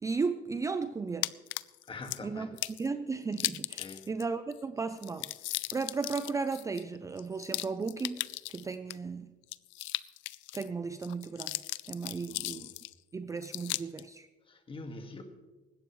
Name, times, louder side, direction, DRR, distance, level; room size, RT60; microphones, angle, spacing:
voice 1, 0.0-1.3 2.2-2.5 2.8-5.3 5.7-8.2 8.5-9.3 10.5-11.6 11.9-12.7 13.1-14.3, right 4 dB, 15° right, 0.5 m, -35 dB
sound 1, 1.2-2.2 2.6-2.9 3.3-4.2 4.5-4.6 4.9-8.9 9.4-10.7 11.0-12.9 13.4-14.0, left 19 dB, 85° left, 0.5 m, -37 dB
voice 2, 1.8-2.6 3.8-4.1 12.3-12.7 14.4-15.2, left 3 dB, 30° left, 1.8 m, -44 dB
20.0 x 16.0 x 3.2 m
cardioid pair, 130°, 19 cm